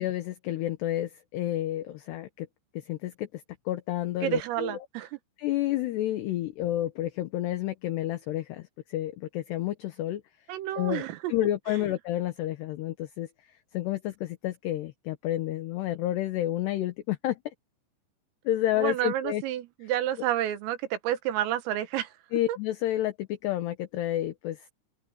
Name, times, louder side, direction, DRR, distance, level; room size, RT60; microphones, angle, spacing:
voice 1, 0.0-2.5 2.7-4.8 5.4-10.2 10.8-17.4 18.4-19.4 22.3-24.7, left 14 dB, 70° left, 2.8 m, -30 dB
voice 2, 4.2-5.1 10.5-11.3 11.7-11.8 18.8-22.1 22.5-22.6, right 12 dB, 85° right, 4.1 m, -30 dB
open air
omnidirectional pair, 5.8 m